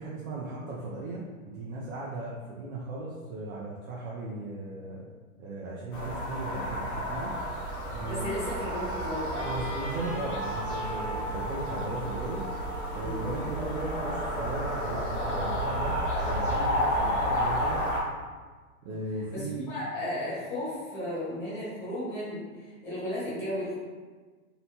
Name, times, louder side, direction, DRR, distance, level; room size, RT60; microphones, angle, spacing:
voice 1, 0.0-5.1 5.4-7.3 7.9-8.4 9.4-12.4 12.9-16.0 16.2-17.8 18.8-19.7, right 2 dB, 60° right, -5 dB, 0.6 m, -36 dB
sound 1, 5.9-18.0, equal, 40° left, 0.9 m, -31 dB
voice 2, 8.0-9.5 13.0-13.2 19.3-22.4 22.8-23.7, left 1 dB, 5° left, -10 dB, 0.3 m, -34 dB
Wind instrument woodwind instrument, 9.4-13.4, equal, 35° right, 1.0 m, -39 dB
2.8 x 2.1 x 2.9 m, 1.4 s
hypercardioid pair, 130°, 42 cm